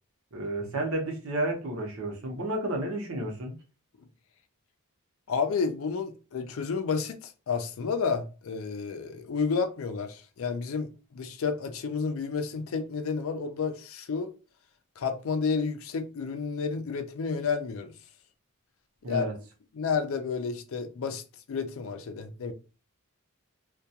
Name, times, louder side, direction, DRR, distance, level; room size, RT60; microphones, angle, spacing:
voice 1, 0.3-3.6 19.0-19.3, right 1 dB, 70° right, 0.8 m, -31 dB
voice 2, 5.3-14.3 15.0-17.9 19.1-19.3 19.7-21.2 21.5-22.5, left 5 dB, 70° left, 0.4 m, -31 dB
2.3 x 2.2 x 2.7 m
head